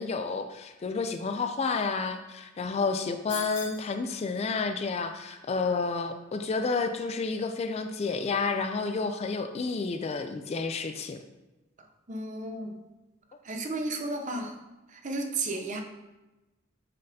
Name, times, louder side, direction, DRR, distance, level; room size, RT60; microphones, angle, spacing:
voice 1, 0.0-11.2, left 4 dB, 30° left, 7 dB, 0.3 m, -30 dB
sound 1, 3.3-3.9, left 4 dB, 60° left, 1.5 m, -39 dB
voice 2, 12.1-12.7 13.5-14.5 15.0-15.8, right 2 dB, 40° right, 4 dB, 0.7 m, -33 dB
8.4 x 4.1 x 2.8 m, 1.1 s
head